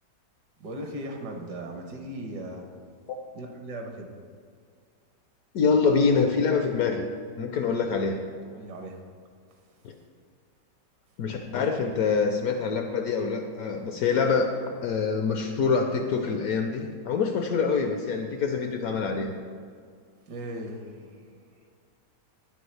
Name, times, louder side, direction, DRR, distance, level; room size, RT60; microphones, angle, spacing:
voice 1, 0.6-2.7 3.3-4.1 7.8-7.9 8.5-9.0 20.3-21.7, right 1 dB, 70° right, 3 dB, 1.5 m, -38 dB
voice 2, 5.5-7.0 7.4-8.1 11.2-14.5 14.8-19.3, left 5 dB, 70° left, 4 dB, 0.9 m, -25 dB
9.8 x 7.0 x 3.3 m, 2.1 s
omnidirectional pair, 1.9 m